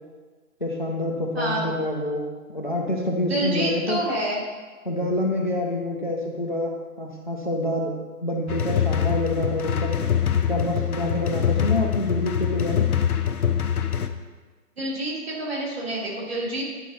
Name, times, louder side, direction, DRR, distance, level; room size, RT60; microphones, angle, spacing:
voice 1, 0.6-2.2 2.5-4.0 4.9-6.7 7.0-7.9 8.2-10.0 10.5-12.9, left 1 dB, 35° left, 0 dB, 0.5 m, -27 dB
voice 2, 1.3-1.7 3.3-4.5 14.8-16.6, right 1 dB, 45° right, -4 dB, 2.3 m, -27 dB
sound 1, 8.5-14.1, left 8 dB, 75° left, 0.8 m, -24 dB
10.5 x 4.5 x 4.0 m, 1.4 s
hypercardioid pair, 175°, 44 cm